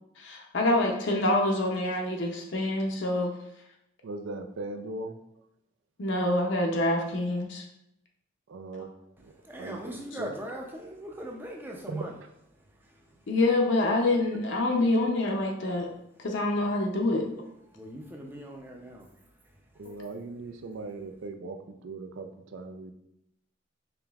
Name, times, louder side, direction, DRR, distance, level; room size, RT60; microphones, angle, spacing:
voice 1, 0.2-3.3 6.0-7.6 8.8-8.9 13.3-15.9 16.2-17.2, left 2 dB, 65° left, 0.5 m, -26 dB
voice 2, 4.0-5.2 8.5-8.9 9.2-9.8 10.2-10.3 11.9-12.1 19.8-22.9, right 3 dB, 70° right, 0.4 m, -38 dB
voice 3, 9.4-12.1 12.8-12.9 17.7-19.1, right 1 dB, 10° right, 0.4 m, -40 dB
4.9 x 3.0 x 2.3 m
head